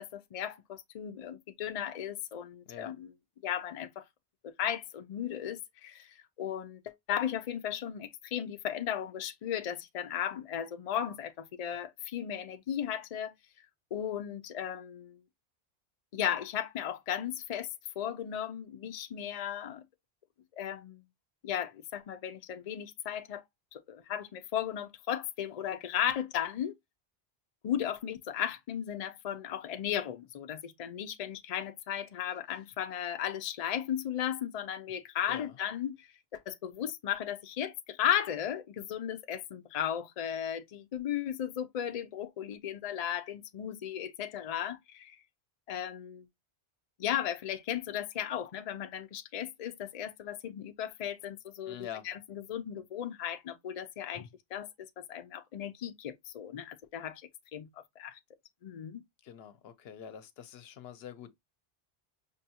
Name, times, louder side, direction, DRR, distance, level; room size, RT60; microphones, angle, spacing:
voice 1, 0.0-3.1 3.4-4.0 4.4-13.3 13.9-15.2 16.1-17.7 18.0-19.8 20.6-21.0 21.4-23.4 23.7-26.7 27.6-45.2 45.7-46.3 47.0-58.2 58.6-59.0, left 10 dB, 50° left, 0.5 m, -36 dB
voice 2, 51.7-52.1 59.2-61.3, left 9 dB, 75° left, 0.8 m, -45 dB
5.4 x 2.3 x 2.7 m
omnidirectional pair, 1.0 m